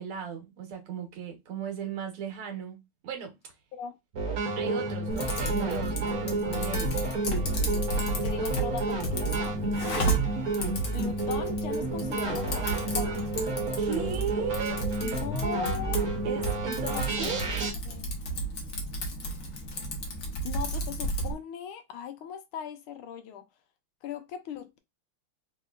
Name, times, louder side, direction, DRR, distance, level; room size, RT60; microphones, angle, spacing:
voice 1, 0.0-3.3 4.6-7.0 9.9-10.1 13.8-14.8 16.3-17.4, right 7 dB, 90° right, 2.0 m, -36 dB
sound 1, 4.1-17.7, right 2 dB, 55° right, 1.2 m, -31 dB
Typing, 5.1-21.3, right 1 dB, 50° left, 1.1 m, -33 dB
voice 2, 8.2-9.6 10.9-13.2 15.0-16.0 16.9-18.1 20.4-23.4 24.0-24.8, left 8 dB, 80° left, 1.5 m, -39 dB
4.2 x 2.8 x 2.3 m
omnidirectional pair, 2.4 m